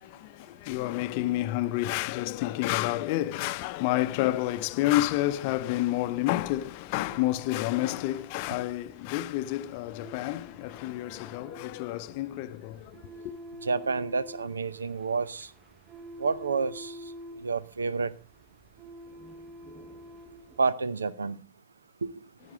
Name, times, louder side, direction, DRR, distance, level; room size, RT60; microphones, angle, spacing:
voice 1, 0.0-13.0, left 15 dB, 45° left, 0.6 m, -29 dB
sound 1, 4.1-20.7, equal, 15° right, 0.9 m, -49 dB
voice 2, 13.6-15.5 16.2-17.0 17.4-18.1 20.6-21.4 22.0-22.1, right 4 dB, 75° right, 0.6 m, -29 dB
15.0 x 11.0 x 3.4 m
figure-of-eight pair, 90°, 0 cm